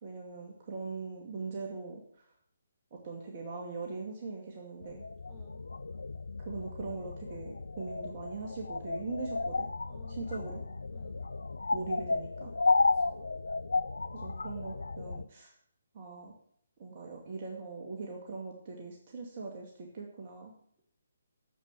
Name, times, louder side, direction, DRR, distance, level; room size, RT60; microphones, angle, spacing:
voice 1, 0.0-2.2 3.0-5.1 6.4-9.7 10.1-10.6 11.7-12.5 14.1-15.5 15.9-16.3 16.8-20.5, right 4 dB, 40° right, -1 dB, 2.3 m, -41 dB
sound 1, 4.8-15.2, left 3 dB, 75° left, 0.5 m, -33 dB
voice 2, 5.3-5.6 9.9-10.5 10.9-11.2 12.8-13.3, left 2 dB, 5° right, -6 dB, 4.1 m, -56 dB
10.0 x 7.7 x 7.0 m, 0.65 s
figure-of-eight pair, 140°, 0 cm